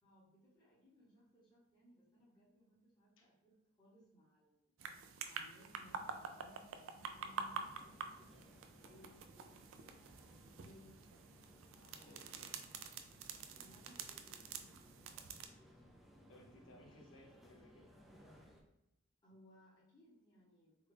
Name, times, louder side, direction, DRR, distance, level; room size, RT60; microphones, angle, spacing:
voice 1, 0.0-4.7 5.3-11.0 11.7-12.3 13.6-14.8 19.2-20.9, equal, 20° left, -7 dB, 0.8 m, -65 dB
sound 1, 4.8-15.5, right 6 dB, 75° right, 0.3 m, -48 dB
sound 2, 7.0-18.6, equal, ahead, 0.4 m, -63 dB
voice 2, 12.0-12.5 16.3-17.9, left 1 dB, 75° left, 1 dB, 0.7 m, -61 dB
3.5 x 2.3 x 3.3 m, 0.81 s
head